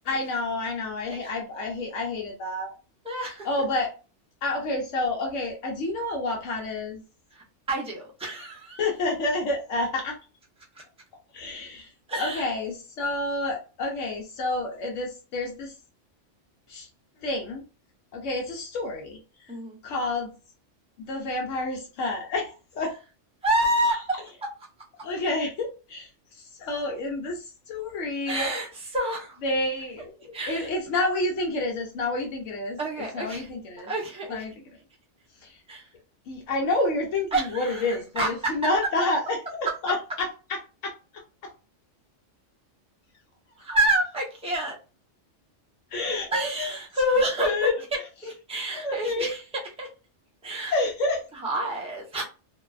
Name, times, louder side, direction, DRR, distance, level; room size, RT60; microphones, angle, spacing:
voice 1, 0.0-2.7 3.2-3.9 4.4-7.0 8.8-10.2 11.3-11.9 12.2-15.7 16.7-16.9 17.2-17.6 18.1-19.5 19.8-20.3 21.0-22.9 25.0-28.5 29.4-32.8 33.1-33.9 34.3-34.5 35.4-35.6 36.3-40.9 41.4-41.5 45.9-46.7 47.1-47.7 48.7-49.3 50.7-51.3, left 2 dB, 80° left, 0 dB, 0.9 m, -29 dB
voice 2, 3.0-3.5 7.3-8.9 10.7-10.8 12.1-12.5 19.5-19.8 23.4-24.2 28.3-29.4 30.3-30.7 32.8-33.5 33.9-34.4 35.7-35.9 37.3-38.5 43.6-44.8 46.3-49.4 49.8-49.9 50.4-50.7 51.3-52.2, right 1 dB, 10° right, -3 dB, 0.3 m, -28 dB
2.5 x 2.1 x 2.3 m, 0.33 s
omnidirectional pair, 1.3 m